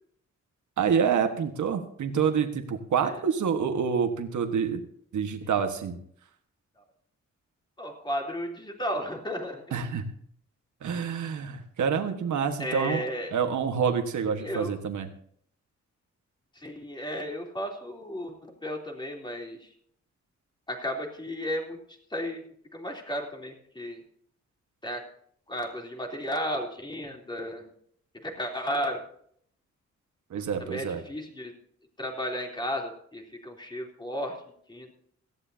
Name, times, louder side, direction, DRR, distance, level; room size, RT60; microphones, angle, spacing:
voice 1, 0.8-4.8 5.1-6.0 9.7-10.0 10.8-13.0 13.3-15.1 30.3-31.0, right 6 dB, 85° right, 6 dB, 1.5 m, -27 dB
voice 2, 7.8-9.6 12.6-13.3 14.4-14.8 16.5-19.7 20.7-22.4 22.7-24.0 24.8-25.0 25.5-27.7 28.2-29.0 30.6-31.5 32.0-34.4 34.7-34.9, equal, 15° left, 1 dB, 3.4 m, -34 dB
18.0 x 15.0 x 2.8 m, 0.64 s
wide cardioid pair, 130°, 29 cm